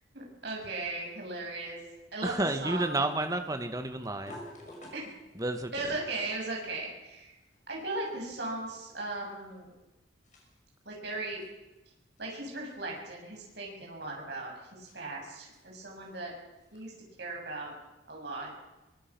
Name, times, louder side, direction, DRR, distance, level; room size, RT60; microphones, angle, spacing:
voice 1, 0.1-1.8 2.1-3.0 4.9-5.1 5.7-7.4 7.7-9.7 10.9-11.4 12.2-16.3 16.7-16.9 17.2-17.7 18.1-18.5, right 2 dB, 65° right, -1 dB, 7.1 m, -37 dB
sound 1, 0.6-17.1, left 1 dB, 40° left, 6.5 m, -56 dB
voice 2, 2.2-4.4 5.4-5.7, right 2 dB, 20° right, 7 dB, 1.7 m, -31 dB
24.0 x 21.0 x 6.2 m, 1.0 s
head